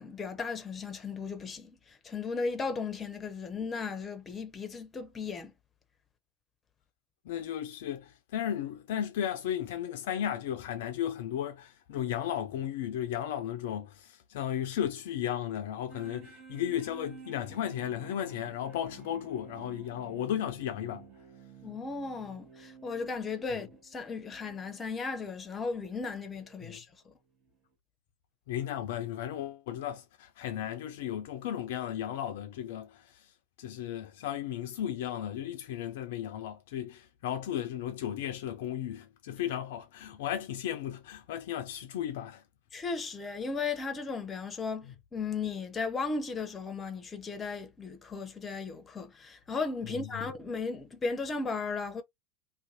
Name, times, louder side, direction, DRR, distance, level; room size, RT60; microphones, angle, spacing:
voice 1, 0.0-5.5 21.6-27.1 42.7-52.0, left 4 dB, 20° left, 0.6 m, -36 dB
voice 2, 7.3-21.1 26.6-26.8 28.5-33.2 33.6-42.4 49.9-50.3, left 10 dB, 60° left, 0.4 m, -35 dB
sound 1, 15.9-26.8 27.4-27.5, right 6 dB, 40° right, 0.9 m, -52 dB
2.5 x 2.2 x 2.7 m
figure-of-eight pair, 80°, 0 cm